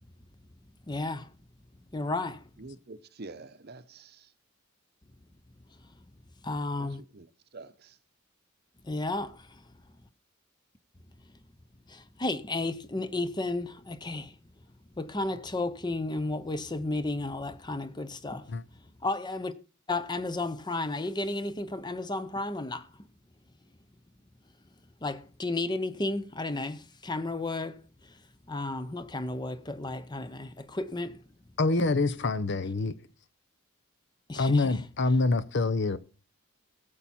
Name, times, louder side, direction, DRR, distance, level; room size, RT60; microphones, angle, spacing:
voice 1, 0.9-1.2 1.9-2.4 6.4-7.0 8.9-9.3 12.2-14.3 15.0-18.4 19.0-19.5 19.9-22.8 25.0-26.8 27.0-27.8 28.5-31.1 34.3-34.8, left 2 dB, 20° left, 0.7 m, -32 dB
voice 2, 2.6-4.3 6.8-6.9 7.1-7.3 7.5-8.0, right 3 dB, 50° right, 0.8 m, -46 dB
voice 3, 31.6-32.9 34.4-36.0, left 3 dB, 55° left, 0.7 m, -26 dB
17.0 x 7.0 x 4.3 m
head